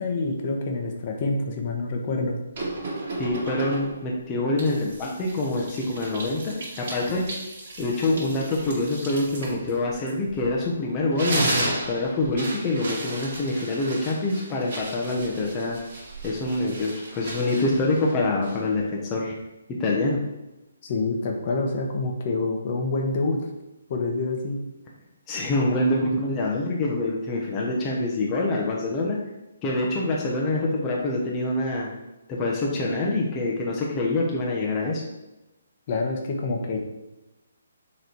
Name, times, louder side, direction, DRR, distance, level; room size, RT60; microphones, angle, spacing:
voice 1, 0.0-2.4 20.8-23.5 23.9-24.6 35.9-36.8, left 3 dB, 40° left, 2 dB, 1.0 m, -27 dB
sound 1, 2.5-4.1 4.6-10.6 11.0-18.8, right 2 dB, 50° right, 2.1 m, -34 dB
voice 2, 3.2-7.2 7.8-15.8 16.2-19.3 19.8-20.2 25.3-29.2 29.6-31.9 32.3-35.0, left 2 dB, 20° left, -3 dB, 0.8 m, -25 dB
6.7 x 3.2 x 4.5 m, 0.99 s
hypercardioid pair, 155°, 0 cm